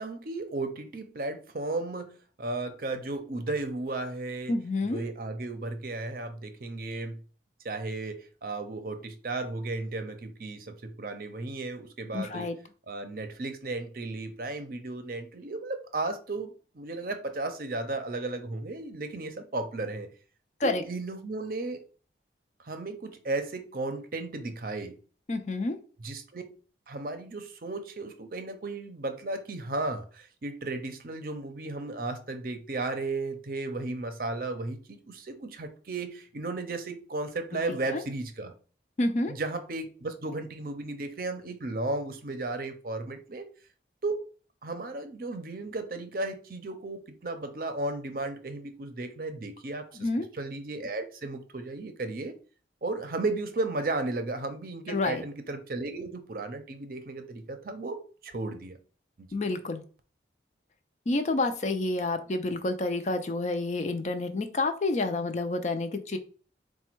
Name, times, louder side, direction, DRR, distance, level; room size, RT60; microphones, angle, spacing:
voice 1, 0.0-2.1 2.4-4.5 4.8-7.2 7.6-12.5 12.9-20.1 20.6-21.8 22.6-25.0 26.0-26.4 26.9-38.5 39.3-43.4 44.0-44.2 44.6-50.1 50.3-52.3 52.8-58.8 59.2-59.3, right 2 dB, 50° right, 0.6 m, -34 dB
voice 2, 4.5-5.0 12.1-12.6 20.6-20.8 25.3-25.8 37.9-38.0 39.0-39.3 50.0-50.3 54.9-55.2 59.3-59.8 61.1-66.2, left 2 dB, 40° left, 0.4 m, -29 dB
4.2 x 2.2 x 4.4 m
head